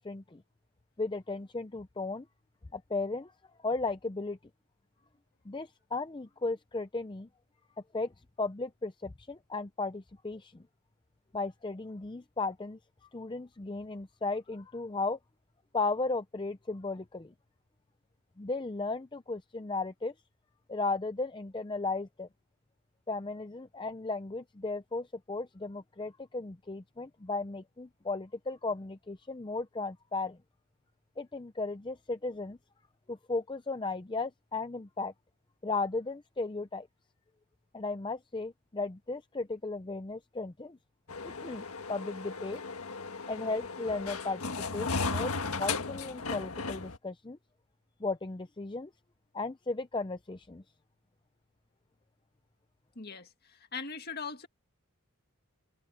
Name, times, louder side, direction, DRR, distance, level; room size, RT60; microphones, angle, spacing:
voice 1, 0.0-0.4 1.0-2.3 2.7-3.3 3.6-4.4 5.5-7.3 7.9-8.1 8.4-10.6 11.3-15.2 15.7-17.3 18.4-20.1 20.7-22.3 23.1-30.4 31.2-32.6 33.1-35.1 35.6-36.9 37.7-40.8 41.2-42.6 43.3-47.4 48.0-48.9 49.3-50.6, left 3 dB, 20° left, 0.5 m, -35 dB
sound 1, 41.1-47.0, left 4 dB, 85° left, 1.5 m, -36 dB
voice 2, 53.0-54.5, left 5 dB, 45° left, 1.9 m, -40 dB
head